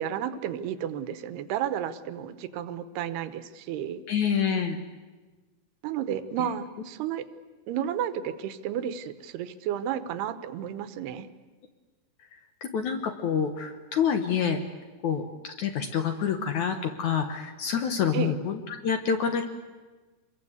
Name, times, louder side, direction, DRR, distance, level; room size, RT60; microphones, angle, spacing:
voice 1, 0.0-4.0 5.8-7.2 7.7-11.3 18.1-18.3, right 10 dB, 85° right, 12 dB, 3.1 m, -32 dB
voice 2, 4.1-4.8 12.6-14.6 15.0-19.5, left 7 dB, 65° left, 7 dB, 2.1 m, -27 dB
26.0 x 22.5 x 8.1 m, 1.3 s
omnidirectional pair, 4.6 m